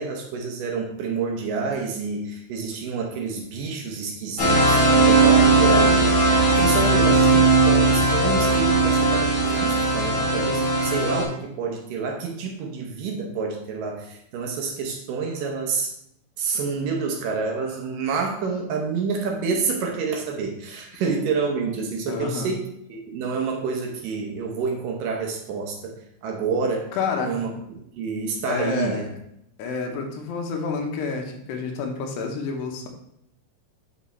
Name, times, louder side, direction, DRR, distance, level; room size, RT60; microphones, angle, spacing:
voice 1, 0.0-6.2 6.6-15.9 16.4-26.9 27.2-27.5 28.0-29.0, right 5 dB, 75° right, 1 dB, 2.1 m, -28 dB
sound 1, 4.4-11.2, right 3 dB, 45° left, 3.2 m, -18 dB
voice 2, 22.1-22.5 27.0-27.4 28.4-29.1 29.6-32.9, left 5 dB, 85° left, 3 dB, 3.1 m, -29 dB
8.0 x 5.3 x 3.3 m, 0.75 s
omnidirectional pair, 4.7 m